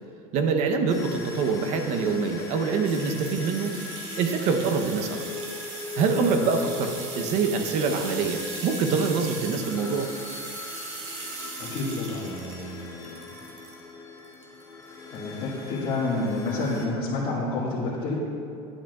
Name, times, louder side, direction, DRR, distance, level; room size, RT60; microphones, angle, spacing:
voice 1, 0.3-3.8 4.2-5.2 6.0-10.1, right 5 dB, 50° right, 6 dB, 0.8 m, -25 dB
sound 1, 0.9-16.9, left 5 dB, 25° left, 1.0 m, -40 dB
sound 2, 2.8-13.8 14.2-14.8 15.1-15.2, right 4 dB, 80° right, 1.6 m, -39 dB
voice 2, 11.6-13.3 15.1-18.1, left 2 dB, 45° left, -10 dB, 1.8 m, -29 dB
11.0 x 8.6 x 2.3 m, 2.6 s
cardioid pair, 150°, 14 cm